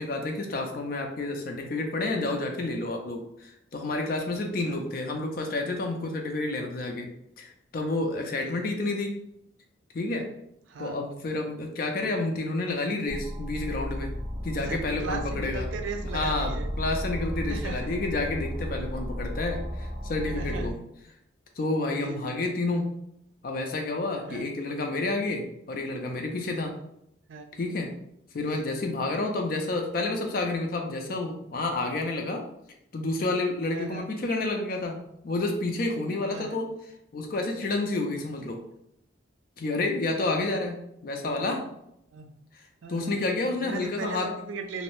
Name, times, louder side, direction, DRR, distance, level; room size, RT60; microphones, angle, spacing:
voice 1, 0.0-7.1 7.4-9.2 9.9-10.3 10.8-14.1 14.4-15.7 16.1-20.7 21.6-22.9 23.4-26.8 27.6-27.9 28.3-32.4 32.9-36.7 37.1-38.6 39.6-41.7 42.9-44.3, left 2 dB, 50° left, 3 dB, 0.4 m, -30 dB
voice 2, 10.7-11.1 14.6-16.7 17.5-17.9 20.3-20.9 21.9-22.4 24.3-24.5 27.3-27.5 28.4-28.8 33.7-34.1 36.3-36.6 42.1-42.4 42.8-43.2 43.6-44.8, right 4 dB, 80° right, 5 dB, 0.4 m, -38 dB
sound 1, 13.1-20.7, equal, 30° right, 0.6 m, -34 dB
2.6 x 2.0 x 3.0 m, 0.77 s
head